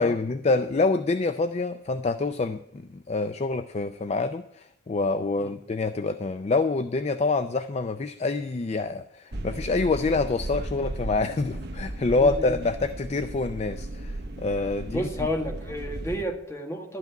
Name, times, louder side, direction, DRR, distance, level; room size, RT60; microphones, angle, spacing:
voice 1, 0.0-15.1, left 3 dB, 35° left, 10 dB, 0.4 m, -26 dB
sound 1, 9.3-16.2, right 1 dB, 55° right, 1.0 m, -35 dB
voice 2, 12.2-12.6 14.9-17.0, equal, 15° left, 2 dB, 1.6 m, -31 dB
12.0 x 5.8 x 9.2 m, 0.76 s
head